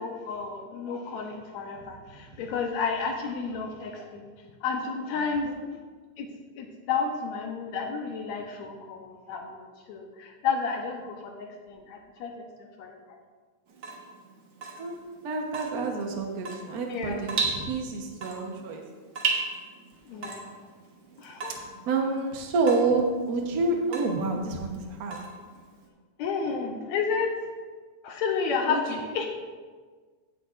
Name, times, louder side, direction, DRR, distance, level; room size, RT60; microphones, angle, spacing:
voice 1, 0.0-4.3 4.6-5.5 6.2-6.3 6.6-12.3 12.6-13.2 16.9-17.2 20.1-20.5 21.2-21.5 26.2-27.3 28.0-29.3, left 5 dB, 75° left, 3 dB, 2.0 m, -31 dB
voice 2, 1.8-2.4 5.2-5.7 14.8-14.9 15.2-18.8 21.9-25.2 28.7-28.8, right 3 dB, 85° right, 1 dB, 0.8 m, -29 dB
Water tap faucet / Drip, 13.7-25.9, right 4 dB, 60° right, 1.1 m, -36 dB
15.0 x 7.9 x 2.5 m, 1.5 s
omnidirectional pair, 3.4 m